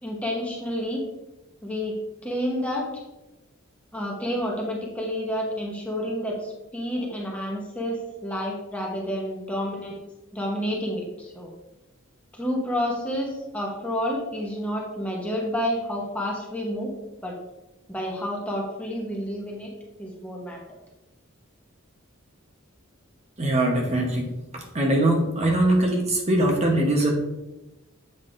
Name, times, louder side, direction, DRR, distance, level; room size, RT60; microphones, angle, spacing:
voice 1, 0.0-1.0 1.6-2.0 2.2-3.0 3.9-10.0 10.3-11.5 12.3-16.9 17.2-17.4 17.9-19.7 20.0-20.8, equal, 5° left, -2 dB, 1.0 m, -29 dB
voice 2, 23.4-24.3 24.7-27.1, right 1 dB, 30° right, 0 dB, 1.0 m, -21 dB
7.6 x 5.7 x 2.6 m, 1.0 s
head